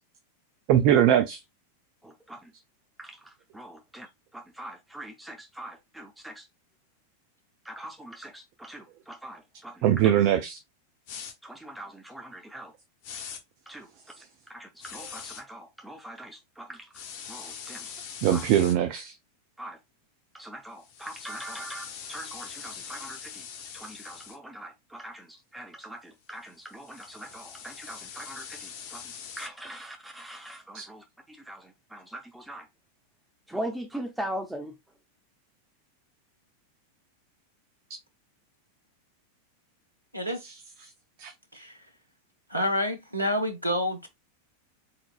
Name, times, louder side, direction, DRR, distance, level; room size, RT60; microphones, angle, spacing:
voice 1, 0.7-1.4 9.8-10.6 18.2-19.1 30.7-30.8 41.2-41.3, right 10 dB, 45° right, 0.6 m, -21 dB
voice 2, 2.0-2.5 3.0-4.1 4.3-6.5 7.6-10.1 11.4-12.7 13.7-13.9 14.2-17.9 18.2-18.5 19.6-19.8 20.3-23.5 23.7-32.7 33.5-34.8, right 1 dB, 5° right, 0.6 m, -41 dB
sound 1, 11.1-11.3 13.0-13.4 14.8-15.4 16.9-18.8 20.8-24.4 26.5-29.5, left 7 dB, 45° left, 0.9 m, -42 dB
voice 3, 42.5-44.1, left 1 dB, 85° right, 0.8 m, -28 dB
4.3 x 3.9 x 2.3 m
figure-of-eight pair, 90°, 0 cm